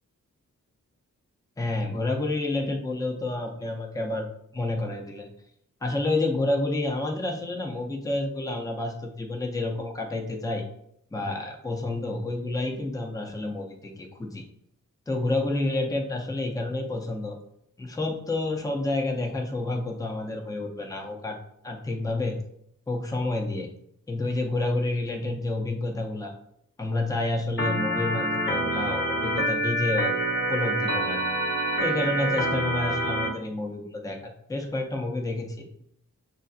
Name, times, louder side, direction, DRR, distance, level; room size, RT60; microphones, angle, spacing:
voice 1, 1.6-5.3 5.8-10.6 11.1-14.4 15.1-17.4 17.8-21.4 21.6-22.4 22.9-23.7 24.1-26.3 26.8-30.1 30.5-31.2 31.8-35.8, left 2 dB, 10° left, 2 dB, 0.5 m, -29 dB
Organ, 27.6-33.3, right 1 dB, 35° left, 0.9 m, -26 dB
6.2 x 2.6 x 2.4 m, 0.72 s
wide cardioid pair, 180°, 32 cm